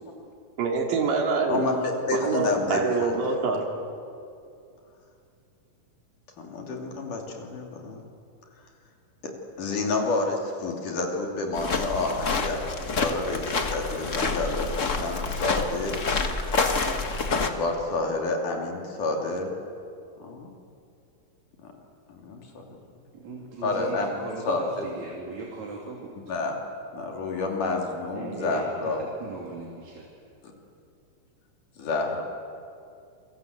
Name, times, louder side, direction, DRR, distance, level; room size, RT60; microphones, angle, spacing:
voice 1, 0.6-1.6 2.2-3.7, right 4 dB, 75° right, 1 dB, 4.2 m, -25 dB
voice 2, 1.5-3.3 6.4-8.0 9.2-15.9 17.4-19.5 20.2-20.5 22.1-22.6 23.6-24.1 24.5-24.9 26.3-26.6 26.9-29.0 31.8-32.2, left 3 dB, 70° left, 1 dB, 4.4 m, -29 dB
sound 1, 11.5-17.5, left 4 dB, 45° left, 1.0 m, -28 dB
voice 3, 23.1-26.2 28.1-30.1, right 3 dB, 60° right, -2 dB, 4.0 m, -38 dB
28.5 x 24.0 x 8.2 m, 2.5 s
omnidirectional pair, 3.8 m